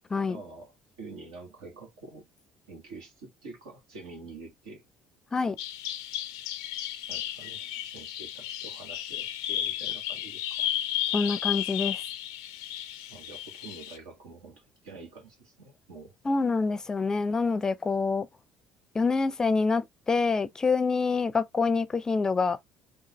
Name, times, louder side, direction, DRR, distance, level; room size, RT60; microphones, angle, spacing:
voice 1, 0.3-2.3 2.7-4.8 7.1-10.7 13.1-16.1, right 3 dB, 85° right, 1.6 m, -47 dB
Bird vocalization bird call bird song, 5.6-14.0, left 12 dB, 85° left, 0.4 m, -33 dB
voice 2, 11.1-12.0 16.3-18.3 18.9-22.6, left 4 dB, 25° left, 0.4 m, -26 dB
3.8 x 2.3 x 3.0 m
hypercardioid pair, 65°, 2 cm